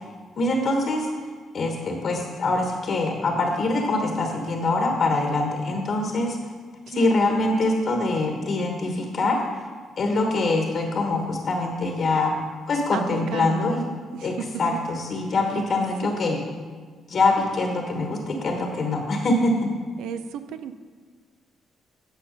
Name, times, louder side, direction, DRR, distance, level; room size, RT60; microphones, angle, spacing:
voice 1, 0.4-1.1 1.5-6.5 6.9-9.4 10.0-12.3 12.7-13.8 14.2-16.4 17.1-19.7, left 2 dB, 55° left, 2 dB, 1.2 m, -24 dB
voice 2, 6.9-7.3 12.9-13.7 14.1-14.3 16.0-16.2 20.0-20.7, right 7 dB, 90° right, 10 dB, 0.4 m, -34 dB
9.2 x 5.7 x 5.2 m, 1.5 s
cardioid pair, 90°, 0 cm